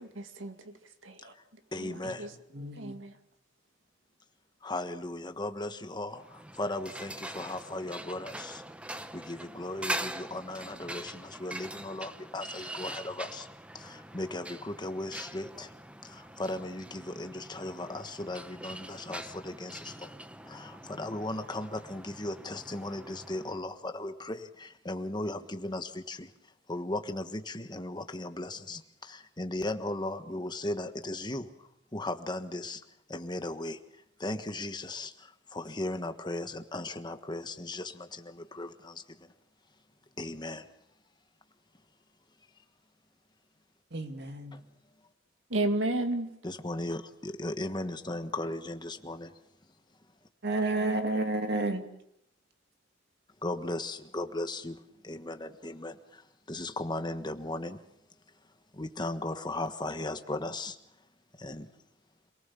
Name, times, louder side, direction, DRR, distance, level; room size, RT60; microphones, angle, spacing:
voice 1, 0.0-2.4 2.8-3.2 45.5-46.3, right 2 dB, 90° right, 7 dB, 2.1 m, -33 dB
voice 2, 1.7-2.3 4.6-8.6 9.1-13.5 13.7-15.7 16.0-20.2 20.4-26.3 26.7-32.8 33.1-33.8 34.2-39.3 40.2-40.7 46.4-49.3 53.4-57.8 58.7-60.8 61.4-61.7, left 2 dB, 25° left, 8 dB, 1.4 m, -37 dB
voice 3, 2.5-3.0 43.9-44.6 50.4-51.9, right 2 dB, 60° right, 6 dB, 2.4 m, -31 dB
sound 1, 6.2-23.6, right 1 dB, 5° right, 0.8 m, -43 dB
27.0 x 18.5 x 7.0 m, 0.77 s
head